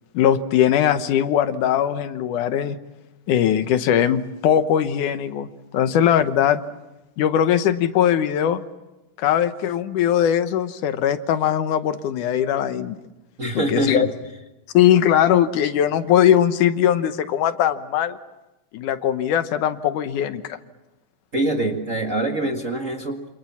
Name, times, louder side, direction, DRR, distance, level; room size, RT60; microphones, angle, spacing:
voice 1, 0.1-2.8 3.3-5.5 5.7-6.6 7.2-8.6 9.2-13.0 13.6-14.1 14.7-18.2 18.7-20.6, left 10 dB, 75° left, 10 dB, 2.5 m, -20 dB
voice 2, 13.4-14.1 21.3-23.3, right 1 dB, 35° right, 2 dB, 1.5 m, -24 dB
28.0 x 27.0 x 7.3 m, 0.99 s
omnidirectional pair, 3.6 m